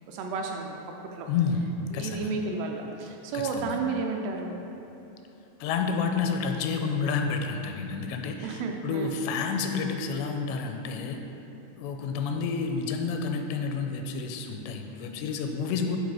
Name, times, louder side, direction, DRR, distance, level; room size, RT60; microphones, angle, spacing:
voice 1, 0.1-0.8 1.1-1.3 1.9-4.6 8.4-9.2, right 4 dB, 80° right, 2 dB, 2.5 m, -32 dB
voice 2, 1.3-1.7 1.9-2.3 3.3-3.8 5.6-11.2 11.8-16.0, left 5 dB, 85° left, 5 dB, 2.7 m, -30 dB
11.0 x 4.1 x 4.8 m, 2.9 s
omnidirectional pair, 5.0 m